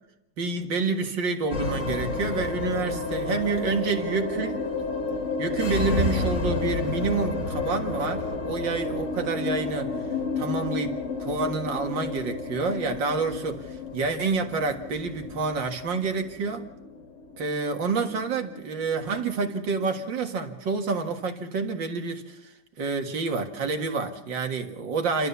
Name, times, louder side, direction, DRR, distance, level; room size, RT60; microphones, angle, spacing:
voice 1, 0.4-4.6 5.4-9.9 10.4-16.7 17.4-22.5 22.8-25.3, right 4 dB, 85° right, 4 dB, 2.5 m, -28 dB
sound 1, 1.5-20.0, left 3 dB, 45° left, 1.7 m, -31 dB
30.0 x 12.5 x 6.9 m, 0.87 s
omnidirectional pair, 1.9 m